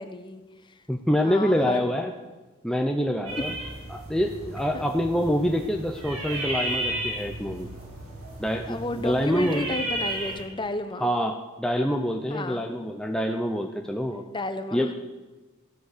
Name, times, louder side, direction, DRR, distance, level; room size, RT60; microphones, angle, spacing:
voice 1, 0.0-0.8 1.1-1.8 3.3-3.4 4.7-4.9 8.5-11.1 12.3-12.7 14.1-14.9, left 2 dB, 20° left, 9 dB, 1.0 m, -33 dB
voice 2, 0.9-2.1 2.6-3.5 3.9-7.7 8.4-9.7 11.0-14.2 14.7-14.9, equal, 5° left, 3 dB, 0.7 m, -26 dB
sound 1, 3.3-10.4, right 1 dB, 80° right, 5.1 m, -34 dB
15.5 x 12.5 x 6.7 m, 1.2 s
head